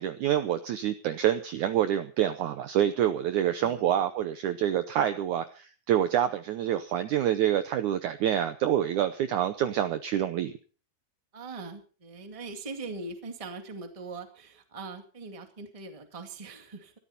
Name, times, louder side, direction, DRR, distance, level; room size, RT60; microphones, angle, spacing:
voice 1, 0.0-10.5, right 11 dB, 75° right, 10 dB, 1.8 m, -27 dB
voice 2, 3.6-3.9 11.3-16.9, right 3 dB, 15° right, 6 dB, 1.2 m, -41 dB
21.0 x 13.5 x 4.2 m, 0.39 s
omnidirectional pair, 4.4 m